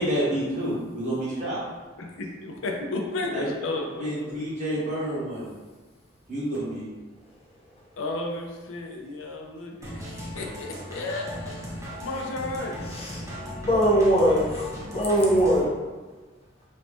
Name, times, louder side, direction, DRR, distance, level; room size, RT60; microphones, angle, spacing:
voice 1, 0.0-1.6 3.3-3.5 4.0-5.4 6.3-6.9, right 1 dB, 40° right, -9 dB, 1.5 m, -28 dB
voice 2, 2.0-4.5 8.0-12.8, left 2 dB, 75° left, 1 dB, 0.5 m, -33 dB
sound 1, 9.8-15.6, equal, 15° right, 0.5 m, -37 dB
voice 3, 12.9-13.2 13.6-15.7, equal, 30° left, -4 dB, 0.6 m, -21 dB
3.1 x 2.6 x 3.4 m, 1.3 s
head